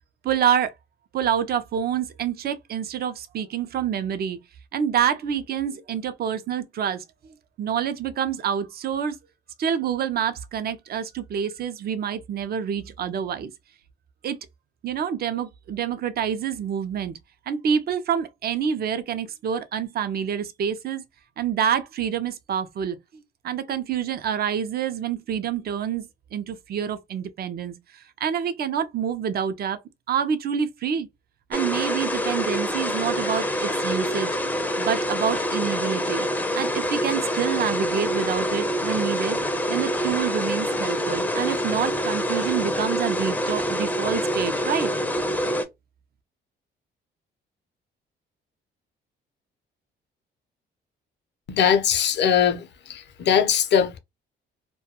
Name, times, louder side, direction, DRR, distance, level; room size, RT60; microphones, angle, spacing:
voice 1, 0.2-0.7 1.1-4.4 4.7-9.2 9.6-13.5 14.2-14.4 14.8-17.1 17.5-21.0 21.4-29.8 30.1-31.1 31.5-34.4 34.8-36.3 36.5-39.4 39.7-44.9, right 8 dB, 50° right, 0.5 m, -27 dB
sound 1, 31.5-45.6, equal, 10° left, 0.5 m, -26 dB
voice 2, 51.5-52.6 53.2-54.0, left 8 dB, 60° left, 0.6 m, -20 dB
2.2 x 2.2 x 2.8 m
cardioid pair, 90°, 20 cm